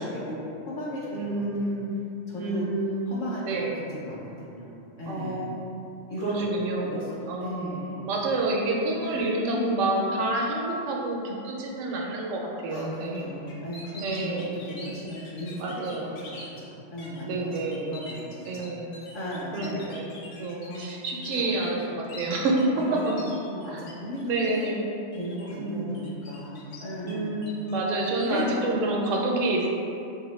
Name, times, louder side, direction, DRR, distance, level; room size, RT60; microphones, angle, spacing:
voice 1, 0.0-1.7 2.3-2.6 3.1-5.5 6.1-6.3 6.6-8.0 9.0-9.9 12.7-15.9 16.1-18.2 18.5-18.7 19.1-19.9 20.7-20.9 21.3-21.5 22.7-24.5 25.2-27.5 28.2-28.7, left 1 dB, 60° left, -7 dB, 0.6 m, -36 dB
voice 2, 1.1-1.9 2.3-3.7 5.1-5.9 6.2-7.0 7.3-13.2 14.0-14.6 15.6-16.1 17.2-18.0 18.5-19.0 19.5-23.0 23.7-23.8 24.3-24.9 25.6-26.0 27.0-29.7, right 2 dB, 90° right, -1 dB, 0.9 m, -28 dB
sound 1, 13.5-16.5 17.0-17.2 17.5-23.9 24.2-24.7 25.1-25.5 25.9-27.1 27.4-28.4, left 3 dB, 80° left, 0.9 m, -45 dB
3.1 x 2.7 x 3.0 m, 2.7 s
omnidirectional pair, 1.3 m